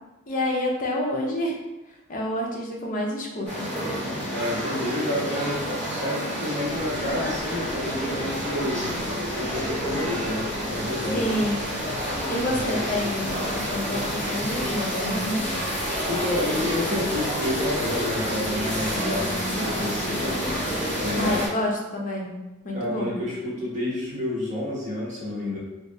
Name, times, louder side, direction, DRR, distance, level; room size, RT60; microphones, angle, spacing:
voice 1, 0.3-1.5 2.1-3.7 11.1-11.7 12.3-15.5 21.1-22.3 22.6-23.2, left 1 dB, 40° left, -2 dB, 0.6 m, -28 dB
sound 1, 3.5-21.5, equal, 5° left, 1.0 m, -29 dB
voice 2, 4.2-5.6 6.0-8.9 9.3-11.2 12.4-13.1 16.1-20.2 20.9-21.4 22.7-25.6, left 1 dB, 35° right, -7 dB, 1.2 m, -29 dB
2.7 x 2.4 x 3.6 m, 1.0 s
head